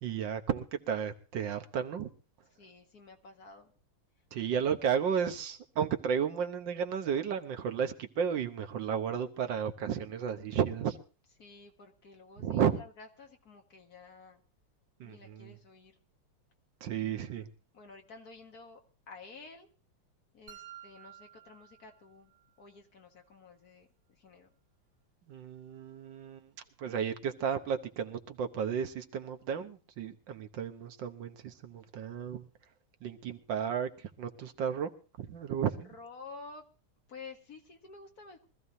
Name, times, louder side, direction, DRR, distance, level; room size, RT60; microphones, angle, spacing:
voice 1, 0.0-2.1 4.3-11.0 12.4-12.8 15.0-15.5 16.8-17.5 25.3-26.4 26.8-32.5 33.0-34.9 35.2-35.9, right 7 dB, 65° right, 1.5 m, -33 dB
voice 2, 2.6-3.7 4.5-4.6 11.4-14.4 15.0-16.0 17.1-17.5 17.7-18.8 19.1-19.7 20.3-24.5 35.9-36.6 37.1-38.5, left 4 dB, 50° left, 1.9 m, -51 dB
sound 1, 20.5-22.5, right 11 dB, 85° right, 1.9 m, -52 dB
23.5 x 14.5 x 2.7 m
omnidirectional pair, 2.3 m